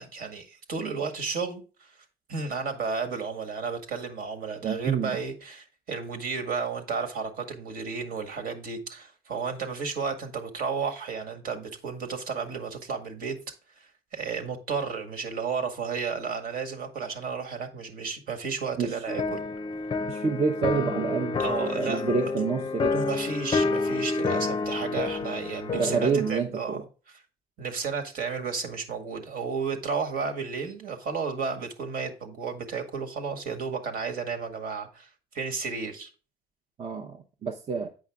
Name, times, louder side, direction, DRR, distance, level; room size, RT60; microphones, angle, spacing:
voice 1, 0.0-1.9 2.3-13.4 13.8-19.4 21.4-22.3 22.9-26.8 27.6-36.1, right 5 dB, 60° right, 1.8 m, -33 dB
voice 2, 4.6-5.2 18.8-19.1 20.1-23.1 25.7-26.8 36.8-37.9, right 5 dB, 35° right, 0.8 m, -28 dB
sound 1, 19.1-26.3, left 4 dB, 30° left, 0.5 m, -29 dB
8.5 x 5.6 x 3.5 m
cardioid pair, 110°, 17 cm